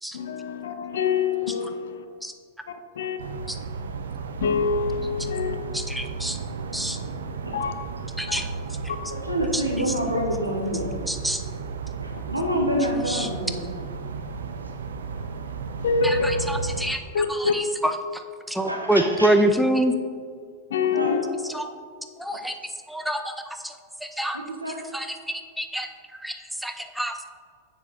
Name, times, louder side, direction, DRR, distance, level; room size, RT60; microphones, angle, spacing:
voice 1, 0.1-2.1 2.7-3.2 4.4-5.6 7.5-7.7 8.3-8.4 9.1-9.2 15.8-16.4 17.1-17.5 20.7-21.2, left 5 dB, 60° left, 8 dB, 0.6 m, -25 dB
sound 1, 3.2-17.0, right 4 dB, 65° right, 0.5 m, -33 dB
voice 2, 5.7-6.4 6.7-7.0 8.2-8.8 9.5-10.0 11.1-11.4 13.0-13.3 16.0-17.0 17.3-19.9 21.4-21.7 22.2-24.4 24.7-27.2, right 1 dB, ahead, 6 dB, 0.5 m, -27 dB
voice 3, 9.1-10.9 12.0-13.5 18.7-19.3 20.9-21.2 24.3-24.8, equal, 85° right, 2 dB, 1.0 m, -27 dB
7.2 x 6.6 x 4.1 m, 2.1 s
figure-of-eight pair, 90°, 0 cm